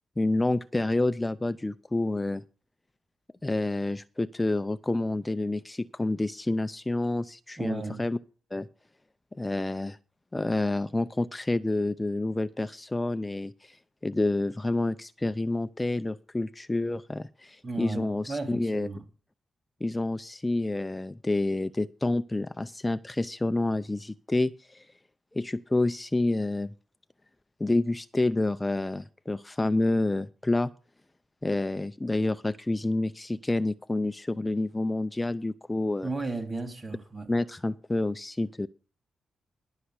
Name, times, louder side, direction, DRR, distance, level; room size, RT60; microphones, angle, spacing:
voice 1, 0.2-2.4 3.4-8.2 8.5-8.7 9.4-10.0 10.3-13.8 14.0-18.9 19.8-24.9 25.3-26.7 27.6-30.7 31.4-36.1 37.3-38.7, left 2 dB, 20° left, 0.5 m, -28 dB
voice 2, 7.6-8.0 17.6-19.0 36.0-37.3, right 3 dB, 35° right, 3.1 m, -34 dB
11.5 x 5.7 x 8.0 m
cardioid pair, 70°, 0 cm